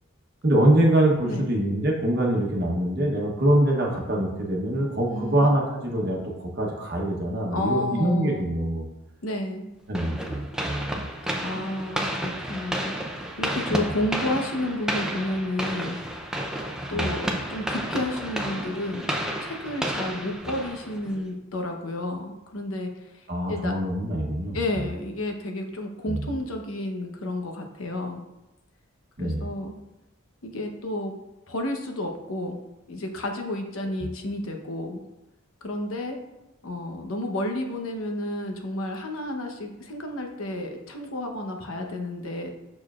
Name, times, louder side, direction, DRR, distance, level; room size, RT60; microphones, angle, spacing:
voice 1, 0.4-8.9 9.9-11.0 13.7-13.8 16.9-17.1 23.3-24.6 26.1-26.3 29.2-29.5, right 1 dB, 50° right, -1 dB, 1.0 m, -24 dB
voice 2, 5.0-5.5 7.5-8.5 9.2-9.7 11.4-16.0 16.9-19.1 19.4-23.7 24.5-28.2 29.2-29.8 30.4-31.1 31.5-32.6 32.9-35.0 35.6-36.2 36.6-42.5, left 1 dB, 80° left, 3 dB, 0.9 m, -31 dB
sound 1, 9.9-21.2, equal, 5° right, 0.5 m, -31 dB
6.9 x 6.4 x 2.4 m, 0.98 s
head